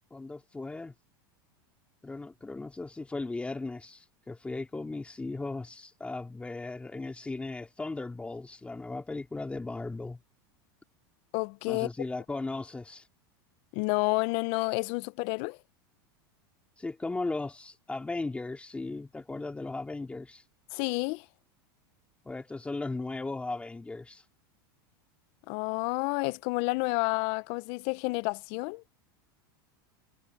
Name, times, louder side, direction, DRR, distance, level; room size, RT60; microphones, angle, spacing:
voice 1, 0.1-0.9 2.0-10.2 11.7-13.1 16.8-20.4 22.2-24.2, left 3 dB, 10° left, 2.3 m, -37 dB
voice 2, 11.3-11.9 13.7-15.6 20.7-21.2 25.5-28.8, left 26 dB, 55° left, 0.7 m, -30 dB
supercardioid pair, 120°, 12 cm